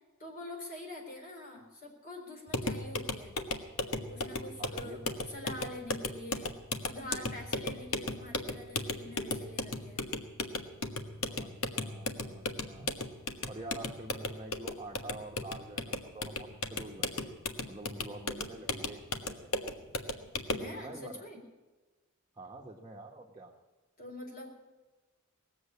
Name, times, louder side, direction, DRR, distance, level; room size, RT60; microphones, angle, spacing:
voice 1, 0.2-3.4 4.1-5.0 5.3-6.5 6.8-10.0 20.6-21.4 24.0-24.5, left 1 dB, 45° left, 1 dB, 4.1 m, -45 dB
sound 1, 2.5-20.7, left 3 dB, 80° left, 1.2 m, -36 dB
voice 2, 4.6-5.3 11.3-12.9 13.5-17.4 17.6-19.5 20.5-21.2 22.3-23.5, right 2 dB, 20° right, -2 dB, 1.3 m, -47 dB
19.0 x 7.9 x 8.4 m, 1.2 s
head